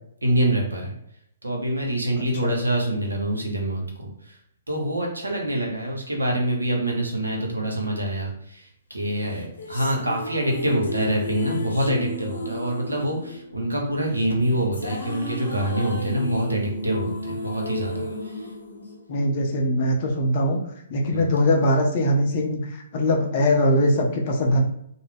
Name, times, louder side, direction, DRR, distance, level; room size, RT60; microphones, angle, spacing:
voice 1, 0.2-0.9 1.4-4.4 4.7-18.5 21.1-21.3, right 1 dB, 80° right, 0 dB, 0.8 m, -26 dB
sound 1, 9.2-19.6, left 1 dB, 75° left, 0.8 m, -33 dB
voice 2, 19.1-20.6 20.9-24.6, left 1 dB, 40° left, 1 dB, 0.5 m, -21 dB
2.3 x 2.0 x 3.3 m, 0.74 s
figure-of-eight pair, 125°, 0 cm